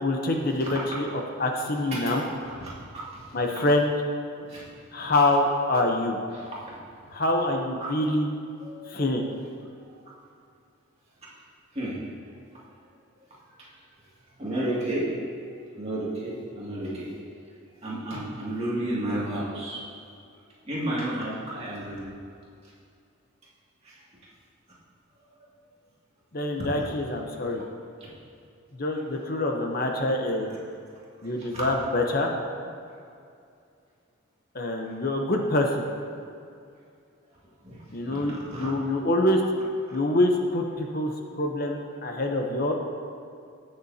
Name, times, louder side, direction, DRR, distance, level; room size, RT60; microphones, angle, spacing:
voice 1, 0.0-1.1 1.4-2.2 3.3-3.9 4.9-6.2 7.1-8.3 8.9-9.3 26.3-27.6 28.8-30.5 31.2-32.3 34.5-35.9 37.9-39.4 39.9-42.7, left 1 dB, 45° left, 2 dB, 0.7 m, -25 dB
voice 2, 1.9-2.2 2.6-2.7 3.1-3.2 4.5-4.6 6.3-6.5 7.8-7.9 8.6-9.4 11.7-12.0 13.6-13.7 14.4-15.1 15.8-17.1 17.8-19.8 20.6-22.1 23.8-23.9 28.0-28.1 29.9-30.0 30.5-30.6 31.5-31.6 37.6-37.8 38.0-38.7 39.9-40.0, right 1 dB, 30° right, -7 dB, 2.3 m, -32 dB
18.0 x 6.8 x 2.8 m, 2.4 s
head